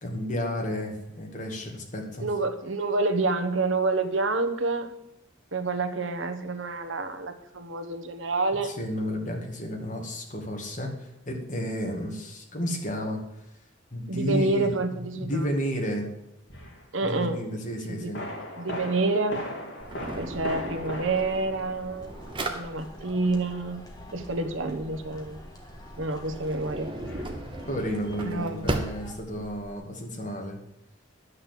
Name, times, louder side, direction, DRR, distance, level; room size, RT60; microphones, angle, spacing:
voice 1, 0.0-2.3 8.6-13.2 13.9-14.7 15.1-16.1 17.0-18.2 27.7-30.6, equal, 40° left, 1 dB, 2.1 m, -32 dB
voice 2, 2.2-4.9 5.5-8.7 14.1-15.5 16.9-17.4 17.9-18.1 18.6-19.4 20.1-22.1 22.5-23.8 24.1-25.4 26.0-26.9 28.2-28.8, right 3 dB, 80° right, 7 dB, 1.2 m, -28 dB
sound 1, 16.5-16.8 18.1-22.6 27.0-27.4, equal, 60° left, 2.8 m, -38 dB
Drawer open or close, 19.8-29.7, right 1 dB, 25° right, 0.9 m, -37 dB
sound 2, 21.7-29.2, left 1 dB, 20° left, 1.7 m, -48 dB
11.0 x 6.6 x 7.6 m, 0.87 s
head